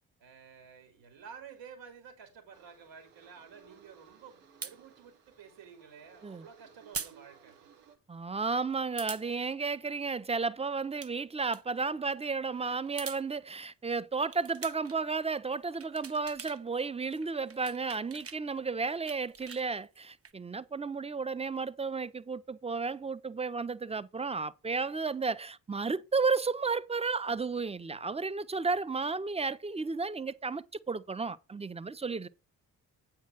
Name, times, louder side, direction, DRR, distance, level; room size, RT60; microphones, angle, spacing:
voice 1, 0.2-7.6 9.0-9.2 9.6-9.7 18.5-18.7 27.8-28.0, right 6 dB, 65° right, 2.6 m, -52 dB
sound 1, 2.5-8.0, right 7 dB, 90° right, 1.3 m, -60 dB
sound 2, 4.6-4.8 6.9-7.2 7.5-7.6 9.0-9.2 10.8-11.1 11.4-11.6 12.8-13.2 14.2-15.0 15.5-16.6 16.9-18.4 18.8-20.3, right 5 dB, 30° right, 0.9 m, -43 dB
voice 2, 8.1-32.3, right 4 dB, 15° right, 0.5 m, -33 dB
8.3 x 4.6 x 5.9 m
hypercardioid pair, 40°, 47 cm